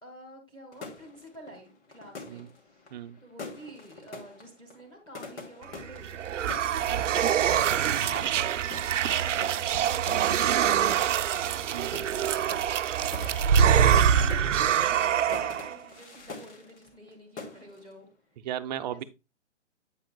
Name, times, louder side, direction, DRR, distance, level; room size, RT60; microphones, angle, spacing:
voice 1, 0.0-2.8 3.2-6.3 6.9-11.1 12.1-12.3 13.1-18.1 18.9-19.0, right 1 dB, 10° left, 1.8 m, -49 dB
sound 1, 0.7-17.1 17.4-17.9, left 4 dB, 65° left, 2.5 m, -45 dB
sound 2, 5.8-15.8, right 9 dB, 80° right, 0.6 m, -25 dB
voice 2, 11.7-12.0 18.4-19.0, right 11 dB, 35° right, 0.6 m, -36 dB
8.4 x 7.8 x 2.2 m
hypercardioid pair, 145°, 37 cm